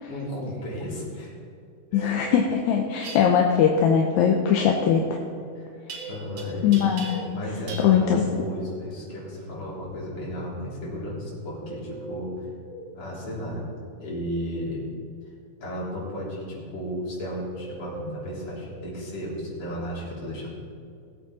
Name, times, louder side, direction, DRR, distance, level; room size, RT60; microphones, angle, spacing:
voice 1, 0.1-1.3 1.9-2.2 2.9-3.1 5.5-5.7 6.0-6.8 7.3-12.5 12.9-13.6 14.0-14.8 15.6-20.5, equal, 60° left, -6 dB, 4.7 m, -34 dB
voice 2, 1.9-5.2 6.6-7.4 7.8-8.2, left 8 dB, 80° left, 1 dB, 2.2 m, -21 dB
sound 1, 1.9-3.3 5.9-7.3 11.5-12.9 17.5-18.9, right 1 dB, ahead, 2.7 m, -40 dB
sound 2, 3.0-3.2 5.9-6.4 6.7-7.4 7.7-7.9, right 4 dB, 65° right, 2.8 m, -39 dB
19.5 x 8.5 x 4.2 m, 2.4 s
omnidirectional pair, 3.4 m